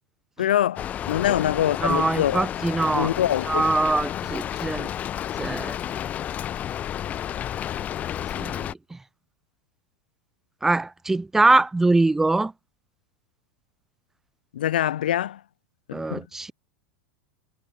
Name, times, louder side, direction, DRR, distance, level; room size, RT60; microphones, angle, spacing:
voice 1, 0.4-2.5 2.9-3.7 14.5-15.4 15.9-16.2, left 11 dB, 85° left, 6.4 m, -24 dB
Rain, 0.8-8.7, left 10 dB, 30° left, 3.4 m, -31 dB
voice 2, 1.8-3.1 3.5-4.9 5.4-5.8 8.2-9.0 10.6-12.5 15.9-16.5, right 2 dB, 10° right, 1.5 m, -23 dB
supercardioid pair, 125°, 5 cm